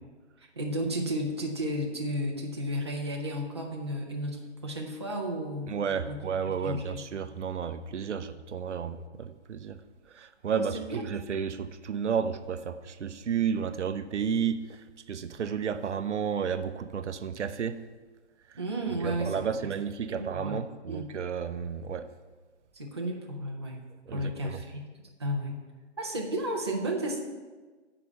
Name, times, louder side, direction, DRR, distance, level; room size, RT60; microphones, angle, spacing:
voice 1, 0.6-5.8 6.0-6.2 6.6-7.0 10.5-11.1 18.6-19.4 20.1-20.6 20.9-21.1 22.7-23.8 24.1-24.8 25.2-25.6 26.0-27.2, equal, 25° right, -2 dB, 0.6 m, -33 dB
voice 2, 5.7-9.8 10.1-14.6 15.1-17.8 19.0-22.1 24.1-24.6, right 7 dB, 85° right, 11 dB, 0.6 m, -32 dB
6.9 x 4.9 x 6.3 m, 1.3 s
hypercardioid pair, 175°, 35 cm